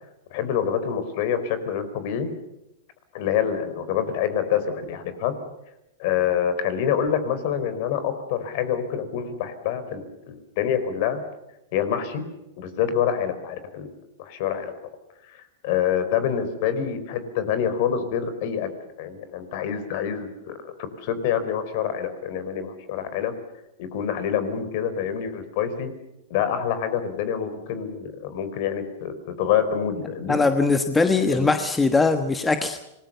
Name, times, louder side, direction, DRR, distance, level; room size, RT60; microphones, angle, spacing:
voice 1, 0.3-2.3 3.1-5.3 6.0-11.2 11.7-12.3 12.6-13.9 14.2-14.7 15.3-18.7 19.0-23.3 23.8-25.9 26.3-30.4 31.3-31.5, left 8 dB, 50° left, 11 dB, 4.6 m, -26 dB
voice 2, 30.3-32.9, left 3 dB, 10° left, 7 dB, 1.3 m, -21 dB
27.0 x 20.5 x 6.9 m, 0.91 s
supercardioid pair, 150°, 0 cm